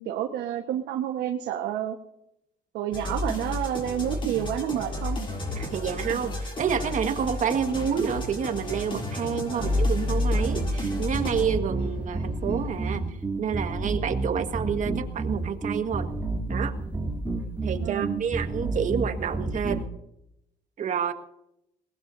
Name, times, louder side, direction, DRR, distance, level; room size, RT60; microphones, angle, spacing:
voice 1, 0.0-2.0 2.7-5.2 9.4-9.7 17.8-18.2, right 11 dB, 80° right, 4 dB, 1.4 m, -29 dB
sound 1, 2.9-11.4, left 1 dB, 30° left, 6.9 m, -30 dB
voice 2, 5.5-16.1 16.5-16.8 17.6-19.9 20.8-21.1, right 7 dB, 50° right, 7 dB, 1.7 m, -29 dB
sound 2, 7.8-13.1, left 2 dB, 65° left, 4.5 m, -45 dB
sound 3, 10.4-19.9, right 2 dB, 10° right, 3.2 m, -30 dB
22.0 x 19.5 x 2.7 m, 0.81 s
cardioid pair, 110°, 17 cm